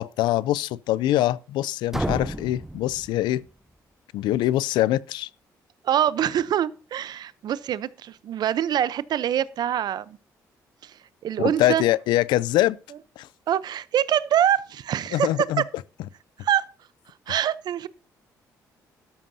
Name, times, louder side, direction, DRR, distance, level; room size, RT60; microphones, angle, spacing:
voice 1, 0.0-3.4 4.1-5.3 11.4-12.8 13.2-13.3 15.1-15.6, left 14 dB, 85° left, 0.4 m, -23 dB
sound 1, 1.9-3.8, right 1 dB, 5° right, 0.6 m, -32 dB
voice 2, 5.8-10.2 10.8-11.8 13.5-15.3 16.4-16.6 17.3-17.9, right 10 dB, 65° right, 0.7 m, -25 dB
13.0 x 12.5 x 2.7 m
supercardioid pair, 70°, 8 cm